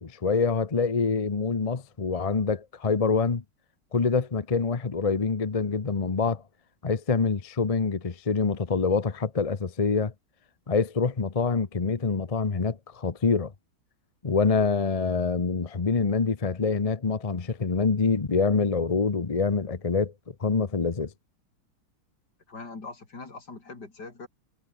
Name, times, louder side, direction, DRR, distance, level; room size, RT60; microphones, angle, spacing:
voice 1, 0.0-3.4 3.9-6.4 6.8-10.1 10.7-13.5 14.2-20.1 20.4-21.1, left 4 dB, 30° left, 0.6 m, -25 dB
voice 2, 22.5-24.3, left 3 dB, 55° left, 4.5 m, -42 dB
omnidirectional pair, 2.2 m